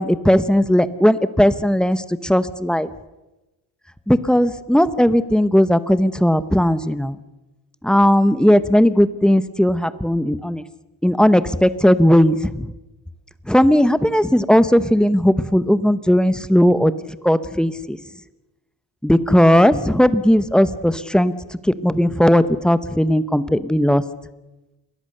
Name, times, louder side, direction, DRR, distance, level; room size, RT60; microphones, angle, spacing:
voice 1, 0.0-2.9 4.1-7.2 7.8-10.6 11.0-12.7 13.5-16.9 17.2-18.0 19.0-21.3 21.8-24.0, equal, ahead, 13 dB, 0.8 m, -17 dB
28.0 x 22.0 x 6.7 m, 1.0 s
cardioid pair, 145°, 38 cm